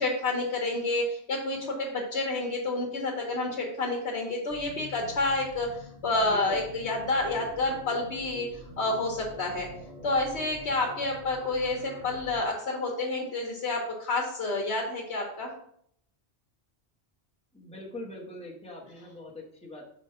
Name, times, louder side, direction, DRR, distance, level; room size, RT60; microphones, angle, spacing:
voice 1, 0.0-8.5 8.8-9.7 10.0-15.5, left 2 dB, 85° left, 0 dB, 1.3 m, -29 dB
sound 1, 4.5-12.5, equal, 70° right, 1.9 m, -46 dB
voice 2, 6.2-6.6 17.5-19.8, left 1 dB, 5° left, -1 dB, 0.9 m, -42 dB
5.0 x 3.7 x 5.4 m, 0.68 s
omnidirectional pair, 1.1 m